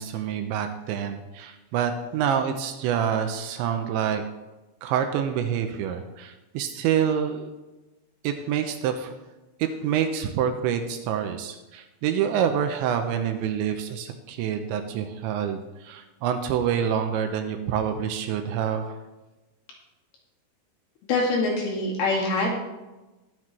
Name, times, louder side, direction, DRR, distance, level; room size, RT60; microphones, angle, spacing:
voice 1, 0.0-4.2 4.8-7.5 8.2-9.2 9.6-18.9, right 8 dB, 85° right, 7 dB, 2.9 m, -27 dB
voice 2, 21.1-22.6, left 2 dB, 60° left, -3 dB, 3.8 m, -24 dB
21.0 x 7.6 x 3.2 m, 1.1 s
omnidirectional pair, 5.5 m